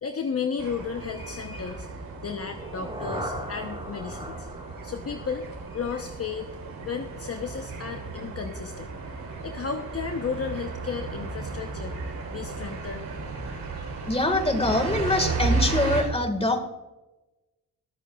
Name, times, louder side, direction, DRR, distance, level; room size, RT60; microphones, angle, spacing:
voice 1, 0.0-4.5 4.8-6.5 6.8-8.9 9.4-11.9 12.3-13.4, left 6 dB, 40° left, 5 dB, 0.9 m, -33 dB
sound 1, 0.6-16.0, right 3 dB, 60° right, 3.9 m, -34 dB
sound 2, 2.4-6.4, right 1 dB, 15° right, 3.9 m, -39 dB
voice 2, 14.0-16.6, left 2 dB, 15° left, 8 dB, 1.7 m, -24 dB
22.5 x 8.2 x 2.4 m, 1.1 s
cardioid pair, 75°, 38 cm